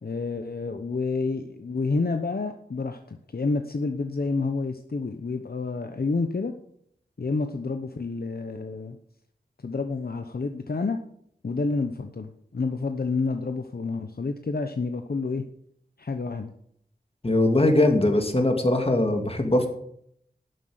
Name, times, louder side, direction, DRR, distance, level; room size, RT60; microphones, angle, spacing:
voice 1, 0.0-6.5 7.2-9.0 9.6-11.0 11.4-15.4 16.0-16.5, left 3 dB, 60° left, 7 dB, 0.9 m, -29 dB
voice 2, 17.2-19.7, left 1 dB, 35° left, 4 dB, 2.4 m, -21 dB
12.0 x 7.7 x 7.9 m, 0.70 s
wide cardioid pair, 65°, 17 cm